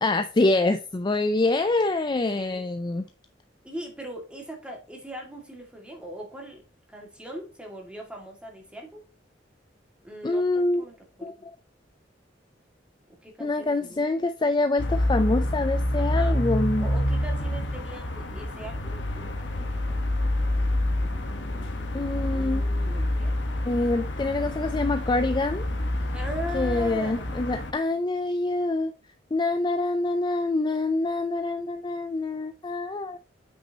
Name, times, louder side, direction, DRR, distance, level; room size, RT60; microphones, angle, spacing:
voice 1, 0.0-3.0 10.2-10.8 11.2-11.5 13.4-16.9 21.9-22.7 23.7-25.7 26.5-28.9 29.3-33.2, left 2 dB, 25° left, 9 dB, 0.4 m, -25 dB
voice 2, 3.6-6.6 6.9-9.0 10.0-11.3 13.2-14.2 16.0-16.5 16.8-20.0 21.0-23.4 26.1-27.2, equal, 5° right, 1 dB, 2.0 m, -40 dB
sound 1, 14.8-27.7, left 1 dB, 80° left, 1.2 m, -27 dB
8.2 x 6.1 x 2.8 m, 0.34 s
head